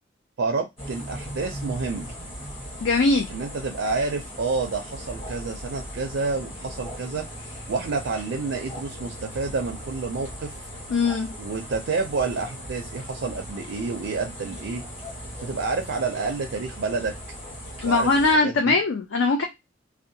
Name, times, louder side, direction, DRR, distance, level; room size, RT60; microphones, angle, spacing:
voice 1, 0.4-2.1 3.3-7.3 7.7-10.5 11.4-14.8 15.4-17.1 17.8-18.8, right 4 dB, 70° right, 5 dB, 0.4 m, -29 dB
sound 1, 0.8-18.3, equal, 30° left, 1.1 m, -38 dB
voice 2, 2.8-3.3 10.9-11.3 17.8-19.4, left 3 dB, 75° left, 4 dB, 0.4 m, -21 dB
2.6 x 2.1 x 2.6 m, 0.20 s
head